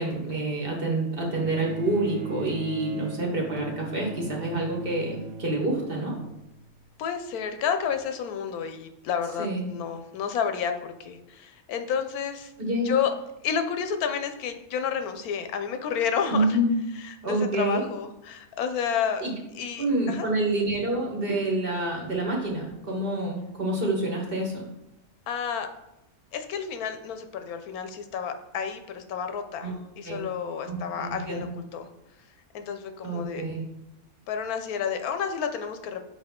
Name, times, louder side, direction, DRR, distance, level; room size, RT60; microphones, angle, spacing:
voice 1, 0.0-6.1 9.4-9.7 12.6-12.9 16.3-16.8 17.2-17.8 19.2-19.3 19.8-24.6 29.6-29.7 30.0-30.2 30.7-31.5 33.0-33.7, right 1 dB, 40° right, -1 dB, 1.4 m, -27 dB
Bowed string instrument, 1.3-6.8 7.9-8.0, right 4 dB, 65° right, 0.8 m, -40 dB
voice 2, 7.0-12.5 12.8-13.1 13.4-16.6 17.2-19.2 19.6-20.3 25.3-25.7 26.3-31.9 32.5-33.4 34.3-36.0, left 7 dB, 90° left, 7 dB, 1.2 m, -30 dB
6.4 x 4.3 x 3.6 m, 0.89 s
omnidirectional pair, 1.5 m